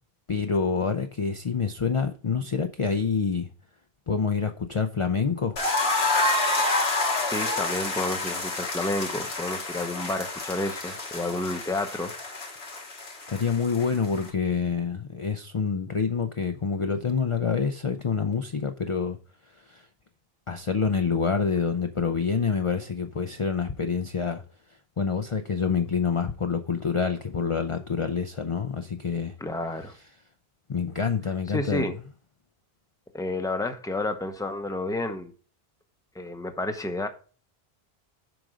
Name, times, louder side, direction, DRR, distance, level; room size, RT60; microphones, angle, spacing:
voice 1, 0.3-3.5 4.1-5.6 13.3-19.2 19.7-19.8 20.5-24.4 25.0-29.3 30.7-31.9, left 5 dB, 40° left, 0.6 m, -27 dB
sound 1, 5.6-14.3, left 2 dB, 80° left, 1.7 m, -28 dB
voice 2, 7.2-12.1 29.4-29.9 31.5-32.0 33.1-35.3 36.1-37.1, left 2 dB, 5° left, 0.8 m, -30 dB
7.8 x 5.2 x 5.0 m
omnidirectional pair, 1.1 m